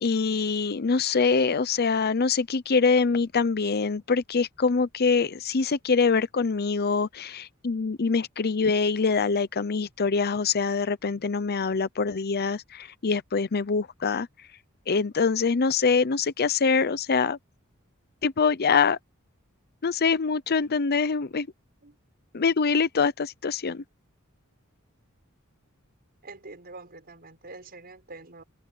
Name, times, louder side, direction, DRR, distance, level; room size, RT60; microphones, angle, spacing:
voice 1, 0.0-14.3 14.9-17.4 18.2-19.0 19.8-21.5 22.3-23.8, left 5 dB, 50° left, 0.7 m, -24 dB
voice 2, 26.2-28.4, right 3 dB, 45° right, 6.4 m, -45 dB
head